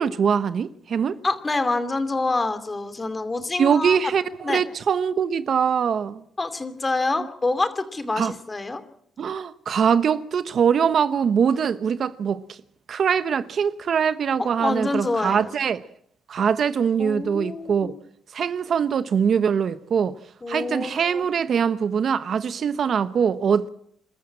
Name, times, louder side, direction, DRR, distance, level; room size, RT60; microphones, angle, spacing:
voice 1, 0.0-1.2 3.6-6.2 8.2-8.3 9.2-12.6 12.9-15.9 16.3-17.9 18.3-20.2 20.5-23.7, right 7 dB, 55° right, 0.9 m, -22 dB
voice 2, 1.2-4.0 4.4-4.6 6.4-8.8 14.4-15.5 17.0-17.9 20.4-21.3, left 3 dB, 25° left, 2.6 m, -26 dB
27.5 x 14.0 x 7.6 m
cardioid pair, 90°, 0 cm